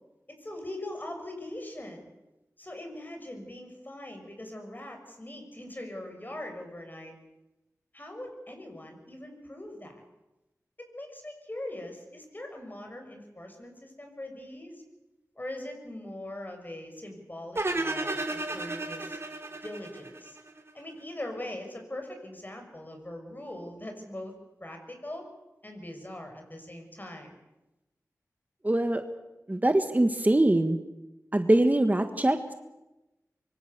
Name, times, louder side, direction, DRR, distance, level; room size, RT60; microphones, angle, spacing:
voice 1, 0.4-2.1 2.6-7.1 7.9-10.0 10.8-14.8 15.3-19.2 19.6-20.4 20.7-25.3 25.6-27.3, left 1 dB, 30° left, 4 dB, 6.6 m, -41 dB
sound 1, 17.5-20.7, right 2 dB, 45° right, 3.6 m, -33 dB
voice 2, 28.6-29.0 29.5-30.8 31.3-32.5, right 1 dB, 25° right, 7 dB, 1.6 m, -23 dB
25.5 x 23.5 x 6.9 m, 0.98 s
wide cardioid pair, 55°, 6 cm